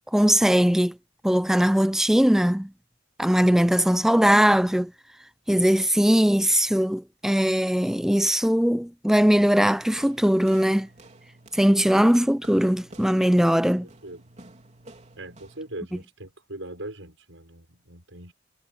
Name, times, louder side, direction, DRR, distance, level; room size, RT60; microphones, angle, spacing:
voice 1, 0.1-1.0 1.2-2.7 3.2-4.9 5.5-10.9 11.5-13.9, equal, ahead, 0.4 m, -20 dB
sound 1, 10.0-15.8, right 2 dB, 40° right, 3.9 m, -50 dB
voice 2, 15.2-18.3, right 1 dB, 90° right, 6.2 m, -40 dB
head